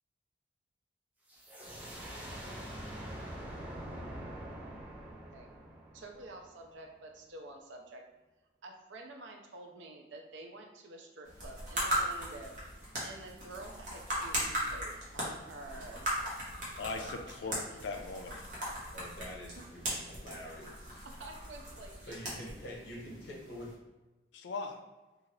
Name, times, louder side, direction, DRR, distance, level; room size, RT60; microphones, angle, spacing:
sound 1, 1.3-6.8, right 1 dB, 10° right, 0.4 m, -44 dB
voice 1, 5.9-8.0 8.6-12.5 13.0-16.1 17.0-17.5 21.0-22.2 22.5-22.7, right 2 dB, 75° right, 2 dB, 0.5 m, -49 dB
sound 2, 11.2-23.7, right 1 dB, 45° right, 0.9 m, -38 dB
voice 2, 16.8-18.4 24.3-24.8, left 4 dB, 70° left, 6 dB, 0.4 m, -39 dB
voice 3, 18.9-21.1 22.0-23.7, left 1 dB, 55° left, -3 dB, 0.8 m, -46 dB
2.7 x 2.4 x 3.1 m, 1.1 s
head